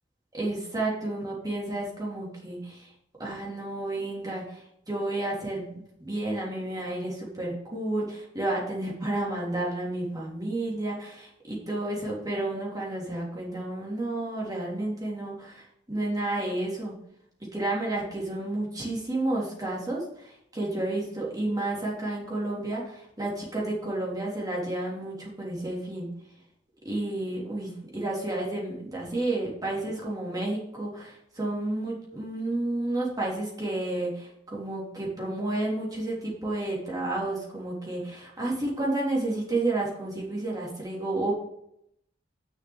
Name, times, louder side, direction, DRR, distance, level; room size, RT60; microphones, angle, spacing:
voice 1, 0.3-2.9 3.2-16.9 17.4-26.1 26.8-41.3, right 2 dB, 20° right, -4 dB, 3.3 m, -31 dB
6.8 x 6.4 x 7.2 m, 0.74 s
head